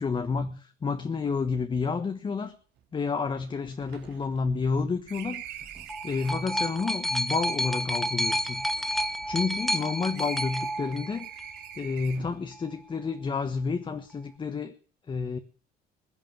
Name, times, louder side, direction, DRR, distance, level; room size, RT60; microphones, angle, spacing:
voice 1, 0.0-2.5 2.9-8.7 9.3-11.5 11.8-14.7 15.1-15.4, left 4 dB, 30° left, 1.4 m, -30 dB
sound 1, 2.4-2.5 2.8-2.9 3.2-6.5 7.4-9.8 10.1-12.5, right 11 dB, 85° right, 2.8 m, -45 dB
sound 2, 5.6-11.6 12.5-12.6, equal, ahead, 1.3 m, -30 dB
21.5 x 8.6 x 7.2 m
cardioid pair, 110°, 17 cm